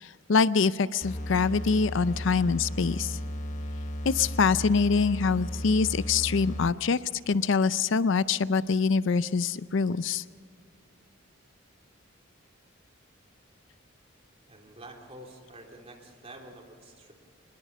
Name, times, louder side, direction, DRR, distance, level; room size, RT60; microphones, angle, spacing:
voice 1, 0.0-3.2 4.1-7.0 7.3-10.2, left 5 dB, 65° left, 16 dB, 0.5 m, -25 dB
sound 1, 1.0-6.9, left 1 dB, 40° left, 1.3 m, -35 dB
voice 2, 14.5-17.1, right 1 dB, 30° right, 1 dB, 3.5 m, -48 dB
24.0 x 21.0 x 5.5 m, 2.2 s
head